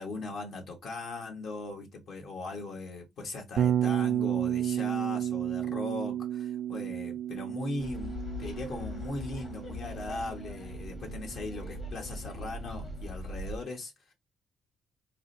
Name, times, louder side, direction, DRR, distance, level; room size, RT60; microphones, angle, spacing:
voice 1, 0.0-14.1, left 2 dB, 65° left, 1.2 m, -39 dB
Bass guitar, 3.6-11.6, right 10 dB, 65° right, 0.3 m, -32 dB
sound 1, 7.8-13.6, left 1 dB, 40° left, 1.1 m, -41 dB
4.8 x 2.2 x 2.6 m
cardioid pair, 90°, 0 cm